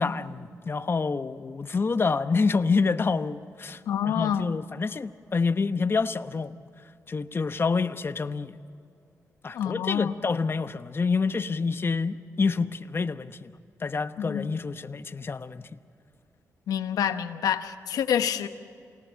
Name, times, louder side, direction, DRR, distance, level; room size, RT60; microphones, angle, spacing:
voice 1, 0.0-3.8 4.1-6.6 7.1-8.6 9.4-13.5 13.8-15.7, left 4 dB, 40° left, 0.9 m, -27 dB
voice 2, 3.9-4.5 9.5-10.1 14.2-14.5 16.7-18.5, left 9 dB, 90° left, 1.1 m, -27 dB
28.0 x 18.5 x 7.5 m
cardioid pair, 65°, 6 cm